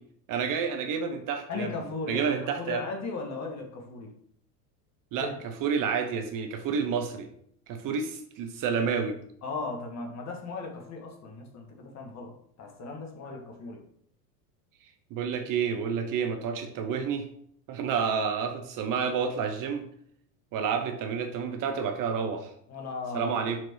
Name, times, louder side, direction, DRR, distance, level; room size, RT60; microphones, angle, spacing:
voice 1, 0.3-1.7 2.1-2.8 5.1-5.3 5.6-7.3 7.7-9.2 15.1-17.3 17.7-19.8 20.5-22.5 23.1-23.6, right 6 dB, 45° right, 6 dB, 1.1 m, -29 dB
voice 2, 1.5-2.3 2.6-4.1 5.2-5.3 9.4-12.3 12.6-13.8 22.7-23.5, left 4 dB, 35° left, 2 dB, 2.0 m, -37 dB
6.1 x 4.4 x 4.7 m, 0.66 s
hypercardioid pair, 100°, 46 cm